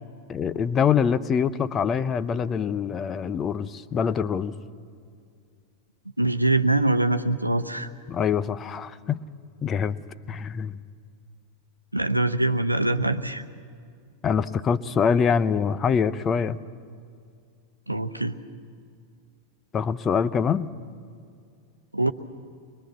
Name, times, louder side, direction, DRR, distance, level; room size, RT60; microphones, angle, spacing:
voice 1, 0.3-4.5 8.1-9.2 9.6-10.0 10.3-10.8 14.2-16.6 19.7-20.7, left 7 dB, 25° left, 15 dB, 0.6 m, -24 dB
voice 2, 6.2-7.9 11.9-13.4 17.9-18.4 21.9-22.1, right 2 dB, 85° right, 8 dB, 0.8 m, -23 dB
23.5 x 22.0 x 7.5 m, 2.2 s
figure-of-eight pair, 90°, 0 cm